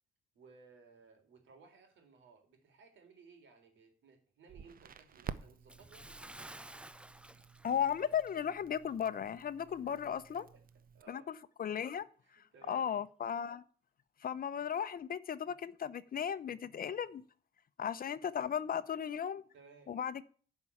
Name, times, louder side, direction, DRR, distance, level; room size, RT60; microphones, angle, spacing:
voice 1, 0.3-6.6 9.9-10.6 10.9-11.3 12.2-12.9 19.5-19.9, right 5 dB, 70° right, 3.6 m, -60 dB
Crackle, 4.5-11.0, right 7 dB, 45° right, 0.8 m, -51 dB
Bathtub (filling or washing) / Splash splatter, 5.7-8.6 8.9-9.1 9.6-9.7, right 1 dB, 5° right, 0.4 m, -53 dB
voice 2, 7.6-10.4 11.1-11.3 11.6-12.1 12.3-13.6 14.2-17.2 17.8-19.4 19.9-20.2, left 8 dB, 45° left, 0.8 m, -36 dB
10.5 x 5.6 x 8.5 m
cardioid pair, 90°, 20 cm